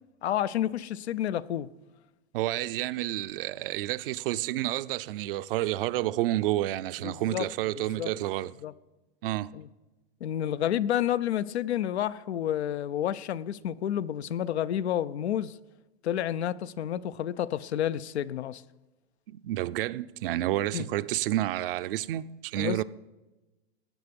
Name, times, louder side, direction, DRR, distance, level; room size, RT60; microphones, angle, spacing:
voice 1, 0.2-1.7 7.0-7.5 8.0-8.1 8.6-8.7 9.5-9.7 10.2-15.6 16.0-18.6 20.7-20.9 22.6-22.8, left 11 dB, 85° left, 0.6 m, -30 dB
voice 2, 2.3-8.5 9.2-9.5 19.3-22.8, right 15 dB, 60° right, 0.6 m, -30 dB
16.5 x 9.5 x 5.3 m
hypercardioid pair, 130°, 32 cm